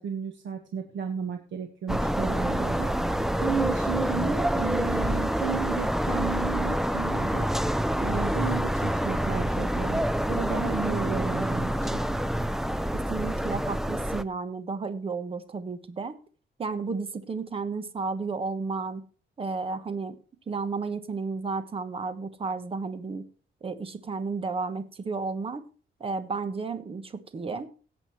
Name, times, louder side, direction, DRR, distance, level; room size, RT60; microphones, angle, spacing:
voice 1, 0.0-2.9 3.4-7.5 8.0-10.0 10.3-12.0, right 6 dB, 75° right, 5 dB, 1.5 m, -33 dB
sound 1, 1.9-14.2, equal, ahead, 0.4 m, -27 dB
voice 2, 12.9-16.2 16.6-19.0 19.4-20.2 20.5-23.2 23.6-25.6 26.0-27.7, right 4 dB, 30° right, 11 dB, 1.1 m, -32 dB
17.5 x 7.5 x 3.1 m, 0.38 s
wide cardioid pair, 165°, 19 cm